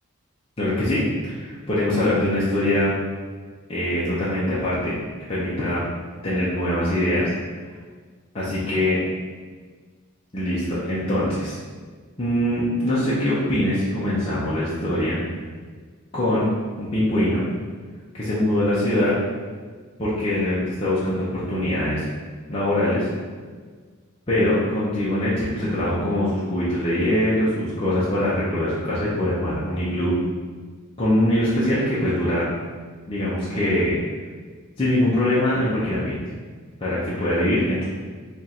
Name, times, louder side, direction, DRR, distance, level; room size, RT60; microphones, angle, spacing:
voice 1, 0.6-2.9 3.7-4.9 5.3-5.8 6.2-7.3 8.3-9.0 10.3-11.6 12.2-15.2 16.1-16.5 16.8-17.4 18.1-19.1 20.0-22.0 22.5-23.1 24.3-30.1 31.0-32.5 33.1-34.0 34.8-36.2 36.8-37.8, left 1 dB, 25° left, -9 dB, 0.7 m, -23 dB
3.5 x 2.5 x 4.2 m, 1.5 s
head